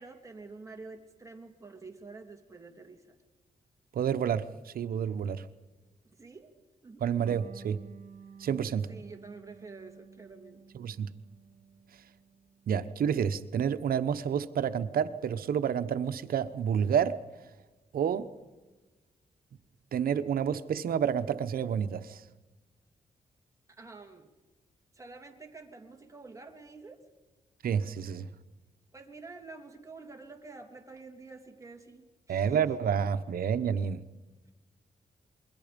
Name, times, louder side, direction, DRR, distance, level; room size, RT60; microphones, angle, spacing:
voice 1, 0.0-3.2 6.0-6.5 6.8-7.1 8.9-10.6 23.7-24.3 24.9-27.0 28.9-32.6, right 3 dB, 20° right, 2 dB, 3.1 m, -48 dB
voice 2, 3.9-5.4 7.0-7.8 8.4-8.9 10.7-11.1 12.7-17.2 17.9-18.3 19.9-22.2 27.6-28.3 32.3-34.0, right 8 dB, 80° right, 11 dB, 1.1 m, -29 dB
Electric guitar, 7.3-14.4, right 6 dB, 65° right, 2.9 m, -53 dB
28.0 x 22.5 x 5.3 m, 1.2 s
cardioid pair, 90°, 15 cm